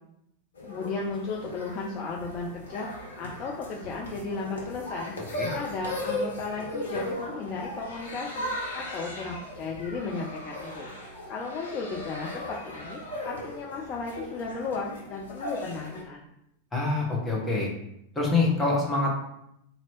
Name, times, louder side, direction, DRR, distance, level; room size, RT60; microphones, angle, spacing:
sound 1, 0.6-16.0, left 1 dB, 65° left, 1.0 m, -37 dB
voice 1, 0.6-5.1 5.5-8.5 8.7-10.9 11.3-16.2, left 4 dB, 35° left, -1 dB, 0.5 m, -35 dB
voice 2, 16.7-17.7 18.2-19.2, left 3 dB, 10° left, -3 dB, 1.1 m, -25 dB
2.9 x 2.9 x 4.4 m, 0.79 s
figure-of-eight pair, 90°, 0 cm